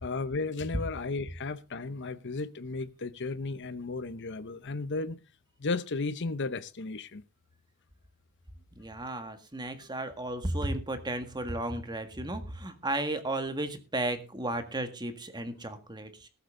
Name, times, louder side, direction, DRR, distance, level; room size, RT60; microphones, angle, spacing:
voice 1, 0.0-5.2 5.6-7.2, left 3 dB, 55° left, 0.8 m, -34 dB
voice 2, 8.7-16.3, right 1 dB, 20° right, 1.8 m, -34 dB
20.0 x 8.0 x 3.8 m
head